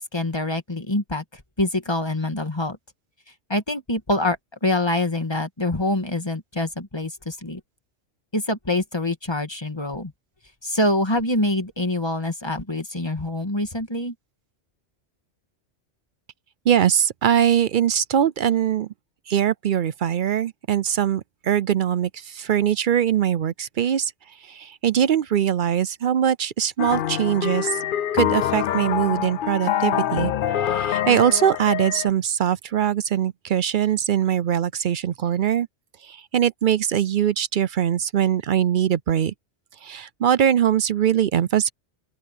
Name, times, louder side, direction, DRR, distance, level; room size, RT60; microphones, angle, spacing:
voice 1, 0.0-2.8 3.5-7.6 8.3-10.1 10.6-14.1, left 1 dB, 20° left, 1.8 m, -25 dB
voice 2, 16.7-18.9 19.3-24.1 24.4-27.8 28.1-35.7 36.0-39.3 39.8-41.7, right 9 dB, 60° right, 0.6 m, -22 dB
sound 1, 26.8-32.1, left 10 dB, 60° left, 0.6 m, -25 dB
open air
omnidirectional pair, 1.2 m